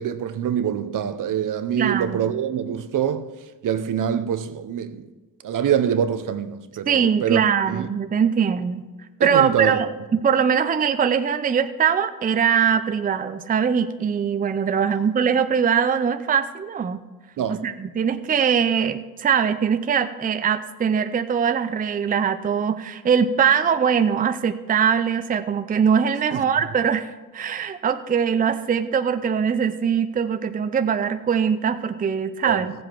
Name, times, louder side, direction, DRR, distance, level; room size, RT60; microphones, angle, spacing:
voice 1, 0.0-3.3 3.6-5.1 5.4-7.4 7.7-7.9 9.2-9.8 14.9-15.0 17.4-17.7 26.3-26.4 32.4-32.7, right 9 dB, 60° right, 0.8 m, -25 dB
voice 2, 1.8-2.3 6.9-8.8 9.2-17.0 17.5-27.1 27.3-32.7, right 7 dB, 25° right, 0.5 m, -22 dB
15.0 x 7.7 x 4.5 m
cardioid pair, 115°, 36 cm